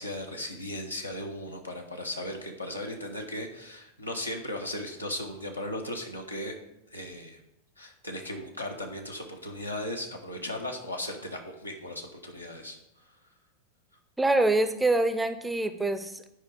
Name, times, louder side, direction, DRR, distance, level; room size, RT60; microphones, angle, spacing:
voice 1, 0.0-6.5 6.9-7.4 7.8-12.8, left 1 dB, 85° left, 1 dB, 1.2 m, -37 dB
voice 2, 14.2-16.3, right 2 dB, 5° right, 9 dB, 0.6 m, -25 dB
9.8 x 5.1 x 4.8 m, 0.85 s
figure-of-eight pair, 90°, 0 cm